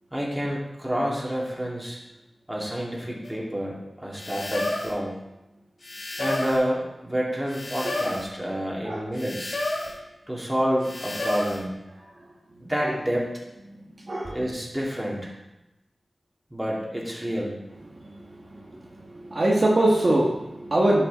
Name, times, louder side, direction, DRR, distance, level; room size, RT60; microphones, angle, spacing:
voice 1, 0.1-2.0 2.5-5.1 6.2-9.6 10.3-11.7 12.6-13.3 14.3-15.3 16.5-17.5, equal, 10° right, -4 dB, 2.4 m, -28 dB
sound 1, 3.2-3.3 4.2-5.0 5.8-6.7 7.5-8.3 9.2-10.0 10.8-11.6, left 2 dB, 65° left, 2.7 m, -31 dB
voice 2, 18.1-18.6 19.0-21.1, right 1 dB, 50° right, -3 dB, 1.3 m, -23 dB
11.5 x 5.5 x 4.0 m, 0.95 s
wide cardioid pair, 75°, 0 cm